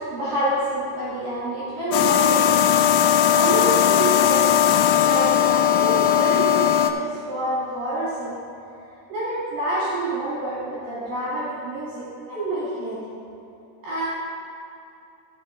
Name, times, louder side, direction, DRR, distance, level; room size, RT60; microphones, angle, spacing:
voice 1, 0.0-2.5 3.3-4.6 4.9-8.4 9.1-13.0 13.8-14.1, right 1 dB, 55° right, -10 dB, 3.5 m, -27 dB
sound 1, 1.9-6.9, left 10 dB, 85° left, 2.6 m, -18 dB
13.0 x 6.3 x 3.8 m, 2.8 s
omnidirectional pair, 4.9 m